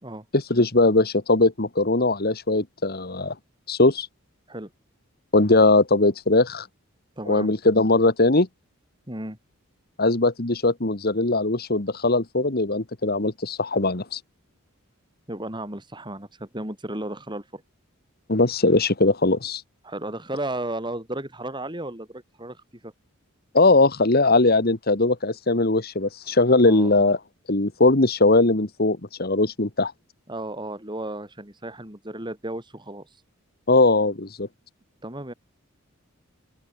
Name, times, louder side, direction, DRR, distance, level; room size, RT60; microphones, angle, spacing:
voice 1, 0.3-3.3 3.7-4.1 5.3-6.7 7.3-8.5 10.0-14.2 18.3-19.6 23.5-27.2 27.5-29.9 33.7-34.5, left 2 dB, 45° left, 1.7 m, -20 dB
voice 2, 7.2-7.5 9.1-9.4 15.3-17.6 19.8-22.9 26.6-27.1 30.3-33.1 35.0-35.3, right 1 dB, 20° right, 5.7 m, -34 dB
open air
head